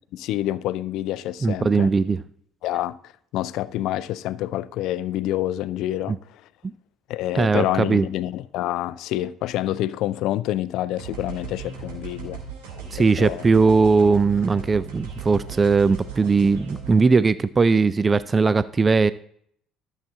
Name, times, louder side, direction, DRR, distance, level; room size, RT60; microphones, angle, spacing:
voice 1, 0.1-1.9 2.6-3.0 3.3-6.4 7.1-12.4 13.0-13.5, left 14 dB, 60° left, 0.4 m, -27 dB
voice 2, 1.4-2.2 6.1-6.2 7.3-8.0 12.9-19.1, right 4 dB, 30° right, 0.3 m, -19 dB
sound 1, 11.0-17.0, right 6 dB, 75° right, 2.7 m, -37 dB
12.0 x 7.3 x 3.7 m
hypercardioid pair, 55°, 0 cm